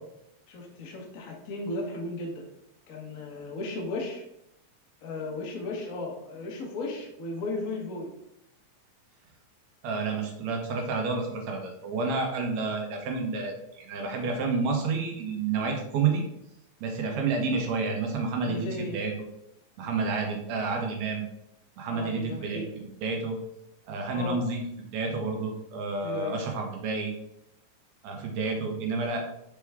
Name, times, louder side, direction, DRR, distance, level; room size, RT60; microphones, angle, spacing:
voice 1, 0.5-2.4 2.9-4.2 5.0-8.1 18.4-19.0 21.9-22.7 24.1-24.4 26.0-26.4, left 2 dB, 80° left, 0 dB, 0.7 m, -35 dB
voice 2, 9.8-16.2 16.8-19.1 19.8-21.3 21.8-23.4 23.9-24.6 24.9-27.1 28.0-29.2, right 4 dB, 70° right, 2 dB, 2.1 m, -30 dB
5.9 x 4.6 x 3.5 m, 0.80 s
omnidirectional pair, 3.5 m